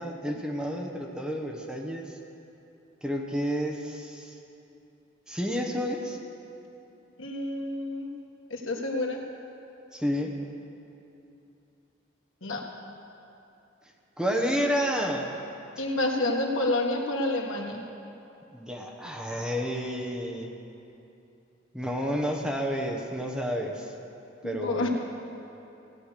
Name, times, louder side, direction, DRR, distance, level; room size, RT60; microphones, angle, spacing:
voice 1, 0.0-2.2 3.0-4.4 5.3-6.2 9.9-10.4 14.2-15.3 18.5-20.5 21.7-23.9 24.4-24.9, equal, 5° right, 0 dB, 1.0 m, -30 dB
voice 2, 7.2-8.1 8.5-9.2 12.4-12.6 15.8-17.8 24.4-24.9, left 2 dB, 90° left, 1 dB, 1.6 m, -29 dB
16.5 x 9.4 x 6.7 m, 2.8 s
head